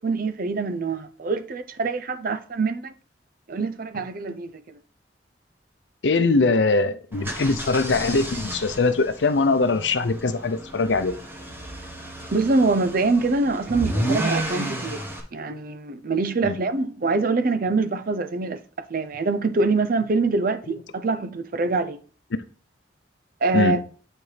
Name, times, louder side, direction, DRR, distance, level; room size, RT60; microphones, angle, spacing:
voice 1, 0.0-2.9 3.5-4.8 12.3-15.0 15.3-22.0 23.4-23.8, right 3 dB, 55° right, 0.6 m, -24 dB
voice 2, 6.0-11.1 16.4-16.6 23.5-23.8, left 3 dB, 85° left, 0.6 m, -22 dB
sound 1, 7.1-15.2, right 1 dB, 15° right, 1.3 m, -32 dB
9.4 x 4.5 x 3.3 m
head